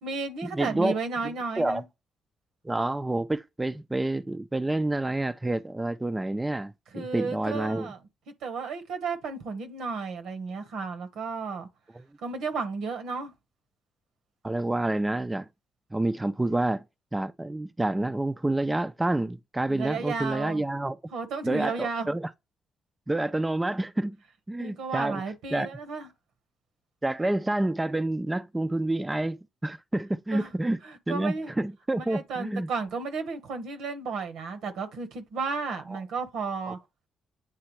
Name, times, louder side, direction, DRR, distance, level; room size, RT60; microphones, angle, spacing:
voice 1, 0.0-1.8 6.9-8.0 8.3-11.7 12.2-13.3 19.7-20.6 21.1-22.1 24.6-26.1 30.3-30.5 30.8-31.5 32.0-36.8, right 4 dB, 80° right, 1.3 m, -33 dB
voice 2, 0.5-0.9 1.6-1.8 2.6-7.9 12.0-12.1 14.4-15.5 15.9-16.8 17.1-21.0 21.4-22.3 23.1-24.2 24.5-25.2 25.5-25.7 27.0-30.8 31.1-32.7 35.9-36.0 36.7-36.8, right 2 dB, 15° right, 0.4 m, -28 dB
8.7 x 3.4 x 3.2 m
cardioid pair, 90°, 0 cm